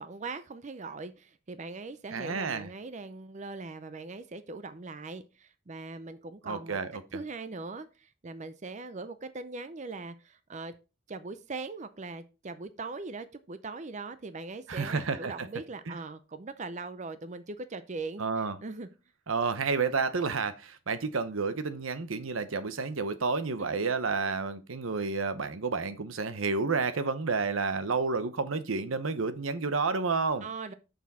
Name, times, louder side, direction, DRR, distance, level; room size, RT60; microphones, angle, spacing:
voice 1, 0.0-6.8 7.1-10.7 11.1-18.9 30.4-30.7, right 3 dB, 35° right, 0.5 m, -40 dB
voice 2, 2.1-2.7 6.4-7.2 14.7-15.3 15.9-16.0 18.2-18.6 19.3-30.5, right 4 dB, 85° right, 0.8 m, -30 dB
6.9 x 6.2 x 4.2 m
head